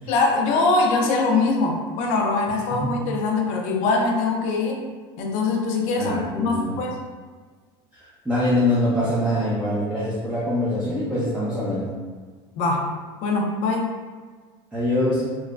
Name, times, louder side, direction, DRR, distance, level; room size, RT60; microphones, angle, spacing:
voice 1, 0.1-4.8 5.2-7.0 12.6-12.9 13.2-13.9, left 3 dB, 55° left, 1 dB, 0.5 m, -22 dB
voice 2, 5.9-6.8 7.9-11.9 14.7-15.2, left 1 dB, 10° right, -8 dB, 0.6 m, -24 dB
3.1 x 2.1 x 2.4 m, 1.5 s
supercardioid pair, 110°, 14 cm